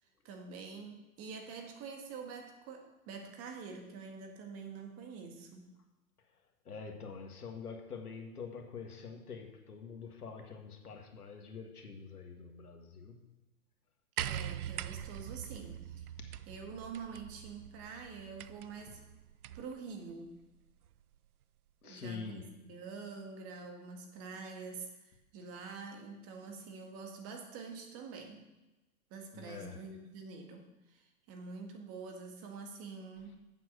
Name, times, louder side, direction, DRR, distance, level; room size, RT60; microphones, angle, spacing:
voice 1, 0.2-5.7 14.2-16.1 16.5-19.0 19.5-20.4 21.8-28.4 29.1-33.4, right 5 dB, 30° right, 3 dB, 1.9 m, -46 dB
voice 2, 6.6-13.2 16.2-16.3 21.8-22.4 29.3-29.8, left 5 dB, 90° left, 4 dB, 1.8 m, -46 dB
sound 1, 14.2-19.8 20.9-21.0, right 11 dB, 80° right, 0.6 m, -43 dB
8.1 x 7.7 x 6.3 m, 1.1 s
hypercardioid pair, 125°, 44 cm